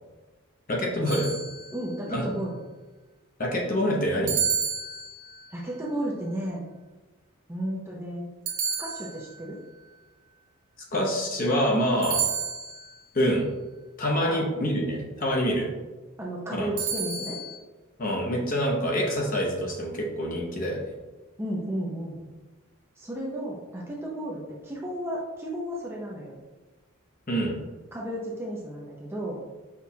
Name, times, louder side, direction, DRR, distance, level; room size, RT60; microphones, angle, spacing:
voice 1, 0.7-1.3 2.1-2.2 3.4-4.4 10.9-12.2 13.1-13.5 14.0-15.7 16.6-16.7 18.0-20.9 27.3-27.6, equal, 40° left, -1 dB, 0.7 m, -26 dB
sound 1, 1.1-2.0 4.3-5.5 8.5-9.5 12.0-13.0 16.8-17.6, right 7 dB, 80° right, 0.6 m, -30 dB
voice 2, 1.7-2.6 5.5-6.6 7.5-8.3 8.8-9.6 14.2-14.8 16.2-17.4 21.4-22.2 23.0-26.4 27.9-29.4, equal, 10° right, -3 dB, 0.5 m, -33 dB
5.9 x 2.3 x 2.7 m, 1.2 s
head